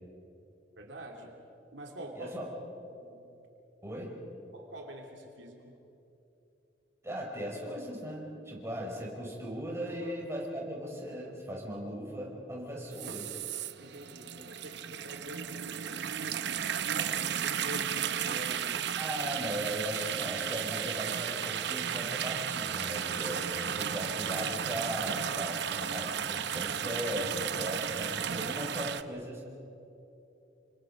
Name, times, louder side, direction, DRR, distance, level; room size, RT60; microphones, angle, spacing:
voice 1, 0.8-1.3 1.7-2.4 2.9-3.2 4.5-5.8 10.0-10.1 13.8-16.4 16.8-18.9, right 1 dB, 85° right, 1 dB, 3.0 m, -45 dB
voice 2, 3.8-4.1 7.0-13.3 19.0-29.4, equal, 15° right, -3 dB, 5.7 m, -38 dB
sound 1, 12.9-29.0, right 8 dB, 65° right, 0.8 m, -34 dB
29.5 x 25.5 x 5.3 m, 2.9 s
head